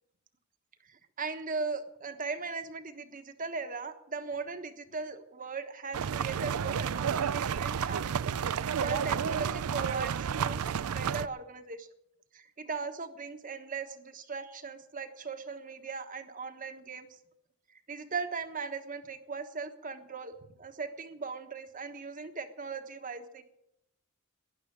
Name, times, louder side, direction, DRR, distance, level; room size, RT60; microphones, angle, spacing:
voice 1, 0.8-8.3 8.8-10.6 10.9-11.9 12.3-17.2 17.7-23.4, right 4 dB, 40° right, 8 dB, 1.3 m, -38 dB
sound 1, 5.9-11.3, right 7 dB, 80° right, 0.4 m, -31 dB
12.0 x 11.0 x 8.8 m, 0.79 s
head